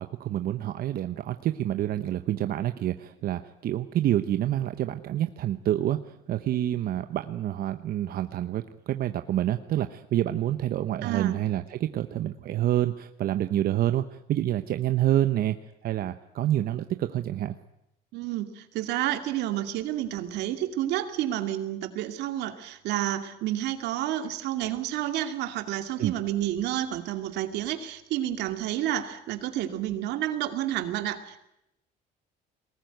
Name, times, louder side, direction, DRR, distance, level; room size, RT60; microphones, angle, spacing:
voice 1, 0.0-15.6 15.8-17.5 26.0-26.2, right 12 dB, 60° right, 9 dB, 1.0 m, -28 dB
voice 2, 11.0-11.4 18.1-31.4, right 12 dB, 85° right, 8 dB, 2.4 m, -30 dB
22.5 x 19.5 x 9.3 m, 0.85 s
cardioid pair, 110°, 17 cm